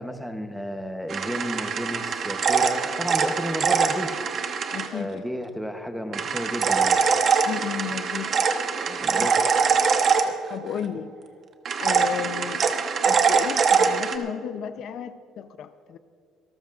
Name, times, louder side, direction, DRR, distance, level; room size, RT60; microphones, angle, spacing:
voice 1, 0.0-4.1 4.9-7.0 8.8-9.4 10.2-10.3, equal, ahead, 6 dB, 0.8 m, -32 dB
sound 1, 1.1-4.9 6.1-10.8 11.7-14.2, right 5 dB, 35° right, 1.0 m, -23 dB
voice 2, 4.7-5.2 7.5-8.4 9.2-9.3 10.5-11.1 11.8-12.6 13.0-16.0, left 9 dB, 50° left, 11 dB, 0.6 m, -33 dB
26.5 x 13.5 x 2.5 m, 2.1 s
cardioid pair, 160°, 0 cm